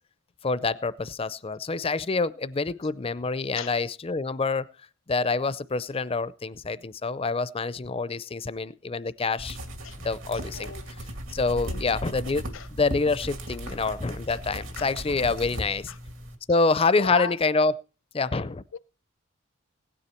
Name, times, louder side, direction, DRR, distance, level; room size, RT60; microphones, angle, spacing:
voice 1, 0.4-4.7 5.1-9.6 10.0-10.7 11.3-15.9 16.5-17.7 18.1-18.6, left 3 dB, 30° left, 0.5 m, -26 dB
sound 1, 9.4-16.4, equal, 75° right, 2.3 m, -37 dB
voice 2, 10.5-10.8 11.6-12.1 12.5-12.7 13.7-13.8 14.3-14.4 14.8-15.6 15.9-16.0 17.0-17.4 18.7-18.8, left 5 dB, 70° left, 0.8 m, -37 dB
16.5 x 9.8 x 4.4 m
head